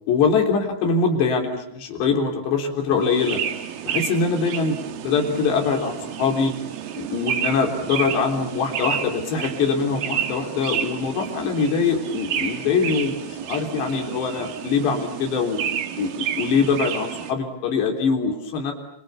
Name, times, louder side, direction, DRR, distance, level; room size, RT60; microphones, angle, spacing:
voice 1, 0.1-3.4 3.9-6.5 6.9-15.6 16.0-18.7, left 5 dB, 60° left, 3 dB, 5.7 m, -23 dB
sound 1, 3.0-17.3, right 9 dB, 60° right, 2.7 m, -30 dB
29.5 x 27.0 x 7.1 m, 0.74 s
omnidirectional pair, 5.6 m